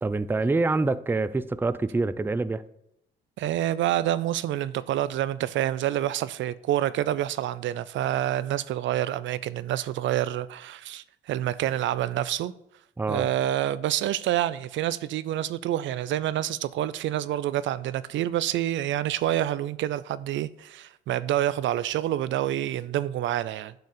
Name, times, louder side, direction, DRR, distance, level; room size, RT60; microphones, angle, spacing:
voice 1, 0.0-2.6 13.0-13.3, right 3 dB, 10° right, 0.4 m, -26 dB
voice 2, 3.4-12.5 13.1-23.7, right 12 dB, 75° right, 0.5 m, -27 dB
10.5 x 4.1 x 6.6 m
cardioid pair, 90°, 20 cm